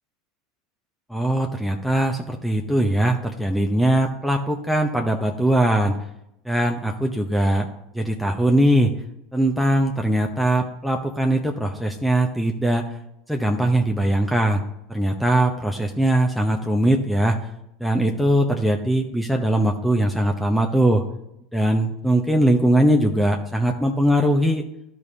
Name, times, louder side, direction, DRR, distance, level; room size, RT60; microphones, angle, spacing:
voice 1, 1.1-6.0 6.4-7.7 7.9-8.9 9.3-12.9 13.3-14.6 14.9-17.4 17.8-21.0 21.5-24.6, right 1 dB, ahead, 2 dB, 0.8 m, -21 dB
13.5 x 5.0 x 2.7 m, 0.82 s
figure-of-eight pair, 75°, 0 cm